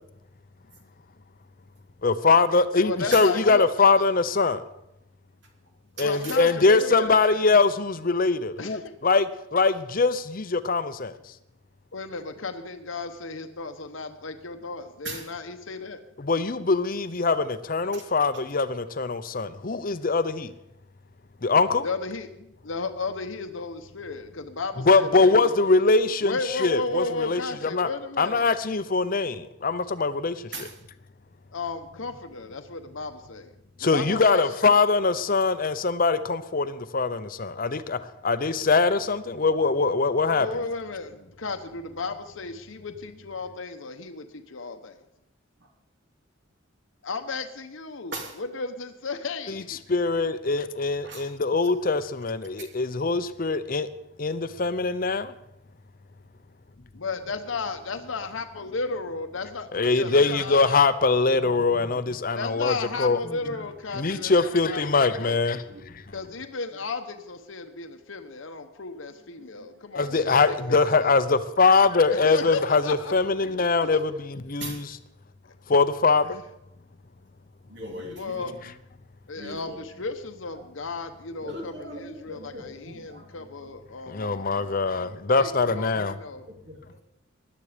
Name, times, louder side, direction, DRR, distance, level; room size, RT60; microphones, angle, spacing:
voice 1, 2.0-4.6 6.0-9.2 9.5-11.1 16.2-20.5 21.4-21.8 24.8-27.9 28.2-30.4 33.8-40.5 49.9-53.9 54.2-55.3 59.7-63.2 63.9-65.6 70.0-74.1 74.5-74.8 75.7-76.4 84.1-86.1, left 4 dB, 45° left, 0.7 m, -22 dB
voice 2, 2.8-3.7 4.0-4.1 6.0-7.2 8.6-8.9 11.9-16.0 21.8-22.3 22.6-25.5 26.2-28.5 31.5-33.5 33.8-34.4 40.2-45.0 47.0-48.1 48.4-49.8 56.9-60.6 62.3-65.4 66.1-71.1 72.2-73.1 73.6-73.7 73.9-74.0 78.1-78.5 79.3-84.8 85.4-86.5, left 3 dB, 75° left, 1.0 m, -34 dB
voice 3, 6.0-6.4 15.0-15.3 17.9-18.0 30.5-30.7 48.1-48.4 51.0-51.3 58.6-58.7 59.8-59.9 61.3-61.5 61.8-62.0 63.2-63.6 64.0-64.3 64.9-65.3 65.7-65.8 69.1-69.2 69.5-69.8 74.6-74.8 77.7-78.6 79.4-79.9 80.5-80.6 81.3-83.7 86.5-87.0, right 2 dB, 60° right, 3.0 m, -40 dB
16.5 x 11.5 x 5.1 m
head